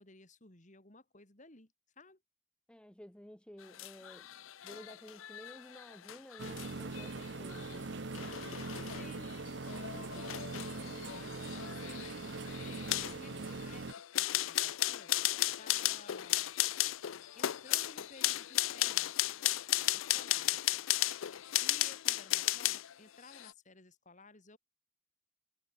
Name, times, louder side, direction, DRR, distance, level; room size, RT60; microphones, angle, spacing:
voice 1, 0.0-2.2 8.8-9.3 9.7-16.6 17.3-19.3 19.9-20.7 21.4-24.6, left 3 dB, 40° left, 3.2 m, -57 dB
voice 2, 2.7-8.0, equal, 5° left, 0.7 m, -53 dB
sound 1, 3.6-22.9 23.3-23.5, left 15 dB, 80° left, 0.5 m, -35 dB
sound 2, 6.4-13.9, right 3 dB, 60° right, 0.8 m, -42 dB
head